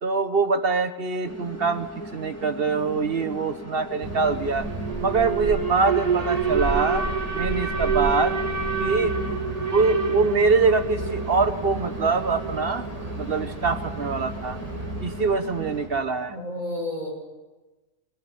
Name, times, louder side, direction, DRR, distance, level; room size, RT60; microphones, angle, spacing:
voice 1, 0.0-4.7 5.0-8.4 8.8-9.2 9.7-12.9 13.2-14.6 15.0-16.3, right 4 dB, 45° right, 11 dB, 1.1 m, -24 dB
sound 1, 1.2-15.9, equal, 10° left, 2.1 m, -38 dB
Alarm, 4.0-16.0, right 4 dB, 30° right, 1.5 m, -28 dB
voice 2, 16.3-17.1, left 1 dB, 85° left, -1 dB, 6.8 m, -31 dB
22.5 x 17.0 x 8.6 m, 1.2 s
omnidirectional pair, 1.4 m